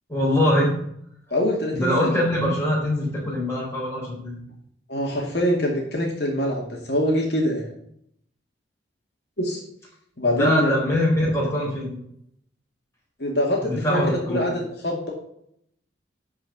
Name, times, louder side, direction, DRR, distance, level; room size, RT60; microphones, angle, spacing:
voice 1, 0.1-0.7 1.7-4.4 10.2-12.0 13.6-14.5, left 1 dB, 15° left, -4 dB, 4.4 m, -23 dB
voice 2, 1.3-2.1 4.9-7.7 9.4-9.6 10.2-10.8 13.2-14.0 14.3-15.1, left 1 dB, 60° left, -1 dB, 2.3 m, -24 dB
12.0 x 4.9 x 6.0 m, 0.70 s
head